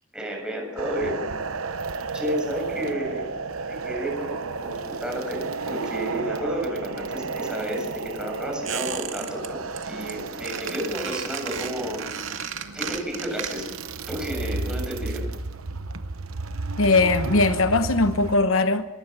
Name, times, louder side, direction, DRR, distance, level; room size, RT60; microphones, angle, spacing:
voice 1, 0.1-1.2 2.1-3.3 3.7-12.0 12.7-13.7 14.1-15.2, equal, 5° right, 7.6 m, -31 dB
sound 1, 0.8-18.4, right 4 dB, 90° right, 1.0 m, -33 dB
Squeak, 8.6-9.5 9.7-10.1 10.4-13.8 14.1-14.2, right 7 dB, 65° right, 2.3 m, -33 dB
voice 2, 16.8-18.9, left 3 dB, 75° left, 1.0 m, -20 dB
25.0 x 22.0 x 6.2 m
head